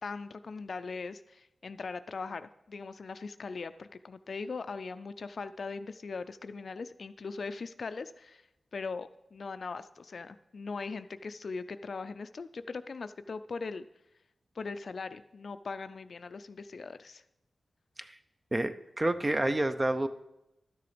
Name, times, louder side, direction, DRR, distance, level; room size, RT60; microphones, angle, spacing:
voice 1, 0.0-8.4 8.7-13.8 14.6-17.2, left 4 dB, 65° left, 12 dB, 0.4 m, -40 dB
voice 2, 18.5-20.1, right 1 dB, 25° right, 11 dB, 0.6 m, -29 dB
12.0 x 6.8 x 5.1 m, 0.89 s
cardioid pair, 70°, 0 cm